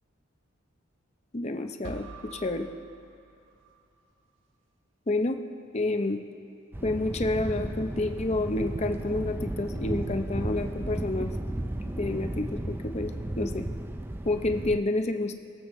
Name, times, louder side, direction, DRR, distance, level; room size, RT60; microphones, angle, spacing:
voice 1, 1.3-2.7 5.1-5.4 5.7-6.2 6.8-11.3 11.9-13.7 14.2-15.3, left 2 dB, 30° left, 6 dB, 0.6 m, -29 dB
sound 1, 1.8-3.9, right 3 dB, 70° right, 0.8 m, -46 dB
Thunder, 6.7-14.8, right 1 dB, 10° right, 0.3 m, -34 dB
22.5 x 7.9 x 3.1 m, 2.6 s
head